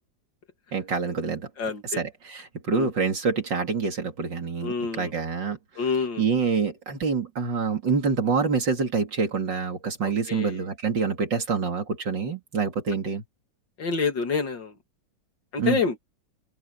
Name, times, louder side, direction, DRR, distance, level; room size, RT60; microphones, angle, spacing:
voice 1, 0.7-1.5 1.8-5.6 6.2-13.2 15.6-15.8, right 5 dB, 75° right, 3.5 m, -26 dB
voice 2, 1.6-2.0 2.7-2.9 4.6-5.1 5.8-6.2 10.0-10.6 13.8-14.7 15.5-16.0, left 5 dB, 75° left, 3.1 m, -27 dB
open air
omnidirectional pair, 2.0 m